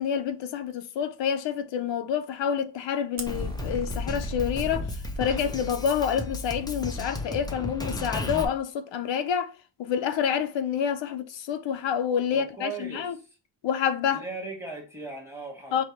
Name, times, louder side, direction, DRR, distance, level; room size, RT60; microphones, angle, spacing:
voice 1, 0.0-4.9 5.2-9.5 9.8-13.1 13.6-14.2 15.7-15.8, left 8 dB, 85° left, 0.6 m, -28 dB
Fire, 3.2-4.3, right 5 dB, 40° right, 0.7 m, -43 dB
Drum kit, 3.3-8.4, left 1 dB, 10° left, 0.4 m, -33 dB
voice 2, 12.3-13.4 14.0-15.8, right 3 dB, 5° right, 1.2 m, -38 dB
4.7 x 2.2 x 4.2 m
wide cardioid pair, 170°, 43 cm